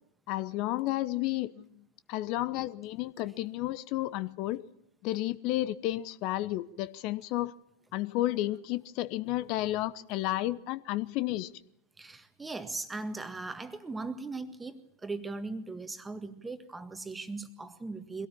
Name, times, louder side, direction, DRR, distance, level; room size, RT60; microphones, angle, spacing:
voice 1, 0.3-1.6 2.1-4.7 5.0-7.5 7.9-11.5, left 16 dB, 40° left, 0.8 m, -32 dB
voice 2, 12.0-18.3, right 3 dB, 10° right, 1.7 m, -39 dB
24.0 x 17.5 x 8.6 m
figure-of-eight pair, 90°, 0 cm